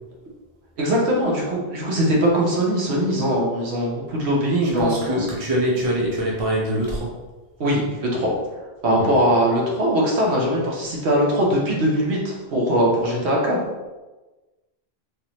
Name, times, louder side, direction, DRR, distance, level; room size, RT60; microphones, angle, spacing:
voice 1, 0.8-5.2 7.6-8.3 8.8-13.6, equal, 90° right, -3 dB, 1.1 m, -21 dB
voice 2, 4.8-7.2 9.0-9.2, equal, 35° right, -3 dB, 0.8 m, -24 dB
3.5 x 2.6 x 2.9 m, 1.2 s
omnidirectional pair, 1.1 m